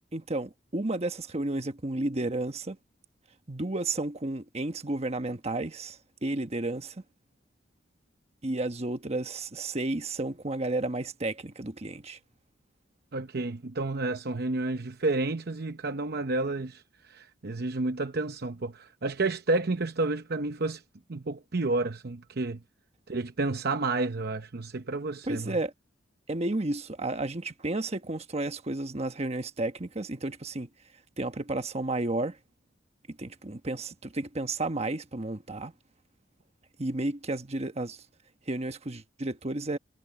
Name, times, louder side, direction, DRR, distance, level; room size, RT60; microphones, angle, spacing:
voice 1, 0.1-2.8 3.5-7.0 8.4-12.2 25.3-25.7 26.3-30.7 31.2-32.4 33.1-35.7 36.8-38.0 38.5-39.8, right 2 dB, 35° right, 1.2 m, -32 dB
voice 2, 13.1-20.8 21.1-22.6 23.1-25.6, right 2 dB, 55° right, 0.8 m, -30 dB
head